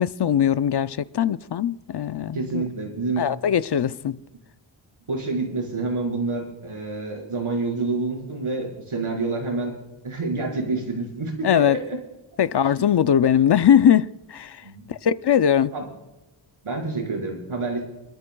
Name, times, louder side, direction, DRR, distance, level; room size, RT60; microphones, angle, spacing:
voice 1, 0.0-2.6 3.2-4.2 11.4-11.8 12.4-14.6 14.9-15.7, left 9 dB, 55° left, 0.5 m, -20 dB
voice 2, 2.3-3.2 5.1-9.7 10.0-12.0 12.8-12.9 14.6-14.8 15.7-15.8 16.6-17.8, right 3 dB, 80° right, 4.9 m, -28 dB
26.5 x 13.5 x 2.3 m
wide cardioid pair, 95°, 49 cm